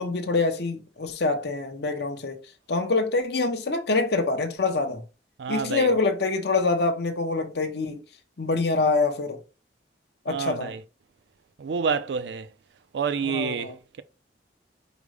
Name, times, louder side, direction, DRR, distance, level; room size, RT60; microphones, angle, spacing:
voice 1, 0.0-2.4 2.7-5.0 5.5-8.0 8.4-9.4 10.2-10.7 13.2-13.8, left 3 dB, 65° left, 0.8 m, -25 dB
voice 2, 5.4-5.9 10.3-10.8 11.6-12.5 12.9-14.0, right 6 dB, 75° right, 0.4 m, -28 dB
5.1 x 2.1 x 4.8 m
head